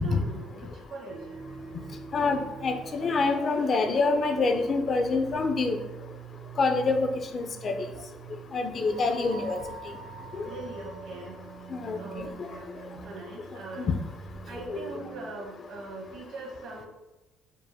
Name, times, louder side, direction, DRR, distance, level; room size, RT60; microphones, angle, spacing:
voice 1, 0.0-1.3 10.4-11.4 11.9-13.9 14.4-16.9, right 2 dB, 65° right, 0 dB, 1.2 m, -41 dB
sound 1, 1.1-15.3, right 5 dB, 50° right, 0.4 m, -44 dB
voice 2, 2.1-5.8 6.6-7.7 8.5-9.6 10.3-10.4 11.7-12.5 13.8-13.9 14.7-14.8, left 3 dB, 45° left, 6 dB, 0.5 m, -26 dB
4.9 x 2.1 x 3.5 m, 1.0 s
supercardioid pair, 90°, 0 cm